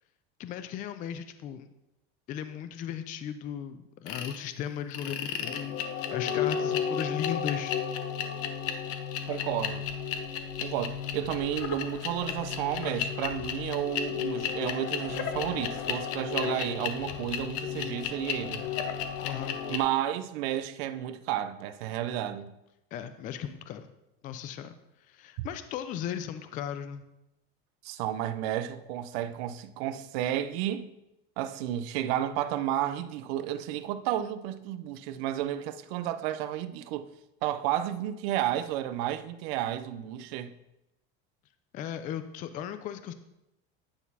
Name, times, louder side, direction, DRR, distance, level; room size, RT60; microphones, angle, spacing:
voice 1, 0.4-1.7 2.3-7.8 19.2-19.6 22.9-23.9 24.2-24.7 25.0-27.1 41.7-43.1, left 9 dB, 30° left, 0.3 m, -36 dB
sound 1, 4.1-4.4 4.9-19.8, left 8 dB, 50° left, 0.8 m, -33 dB
voice 2, 9.3-9.8 10.6-18.7 19.7-22.5 25.4-25.5 27.8-30.9 31.4-37.1 37.4-40.5, right 12 dB, 80° right, 0.6 m, -32 dB
9.7 x 4.1 x 5.4 m
cardioid pair, 160°, 30 cm